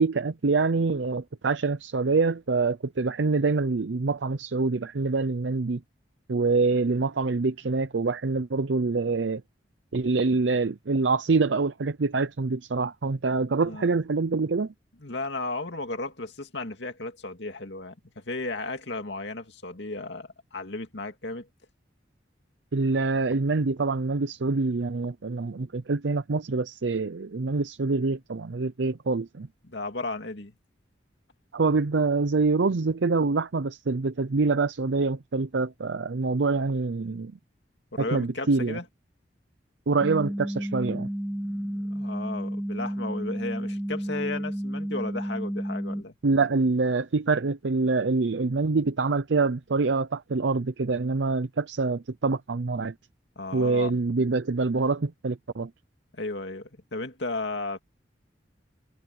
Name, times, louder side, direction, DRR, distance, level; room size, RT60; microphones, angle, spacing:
voice 1, 0.0-5.8 6.3-9.4 9.9-14.7 22.7-29.5 31.5-37.3 38.0-38.8 39.9-41.1 46.2-52.9 53.5-55.7, right 3 dB, 75° right, 0.6 m, -25 dB
voice 2, 15.0-21.5 29.6-30.6 37.9-38.8 41.4-46.1 53.4-53.9 56.2-57.8, left 2 dB, 70° left, 2.5 m, -34 dB
sound 1, 40.0-46.0, equal, 5° right, 0.4 m, -31 dB
head